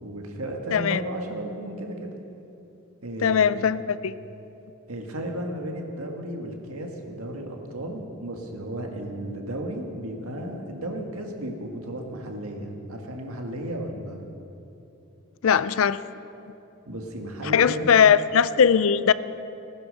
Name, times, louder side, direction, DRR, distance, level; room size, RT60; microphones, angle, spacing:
voice 1, 0.0-2.1 3.0-3.6 4.9-14.3 16.9-17.9, right 1 dB, 75° right, 2 dB, 1.8 m, -34 dB
voice 2, 3.2-4.1 15.4-16.0 17.4-19.1, left 7 dB, 65° left, 16 dB, 0.4 m, -20 dB
16.0 x 10.5 x 6.6 m, 2.9 s
head